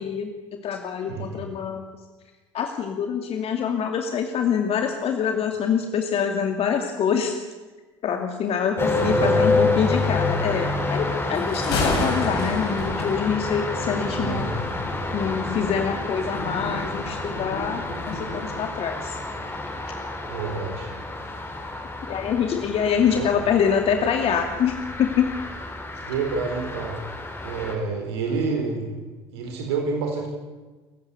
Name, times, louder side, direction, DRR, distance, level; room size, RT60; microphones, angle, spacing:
voice 1, 0.0-1.8 2.5-7.4 8.0-14.5 15.1-19.2 22.0-25.3, left 7 dB, 45° left, 5 dB, 2.5 m, -25 dB
voice 2, 1.0-1.5 8.8-9.4 14.1-14.5 20.3-20.9 23.1-23.3 26.1-27.0 27.4-29.0 29.3-30.3, right 4 dB, 70° right, 2 dB, 4.2 m, -28 dB
sound 1, 8.8-27.7, left 2 dB, 15° left, 5.2 m, -28 dB
Thunder, 11.3-18.6, left 2 dB, 75° left, 7.7 m, -32 dB
29.5 x 15.5 x 8.3 m, 1.3 s
figure-of-eight pair, 65°, 14 cm